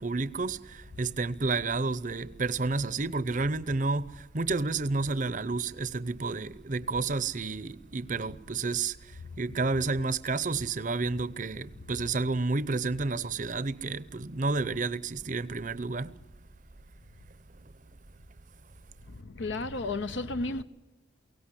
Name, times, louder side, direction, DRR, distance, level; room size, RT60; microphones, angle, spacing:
voice 1, 0.0-16.1, right 3 dB, 40° right, 0.7 m, -30 dB
voice 2, 19.1-20.6, left 2 dB, 65° left, 0.7 m, -33 dB
23.0 x 17.5 x 9.9 m
head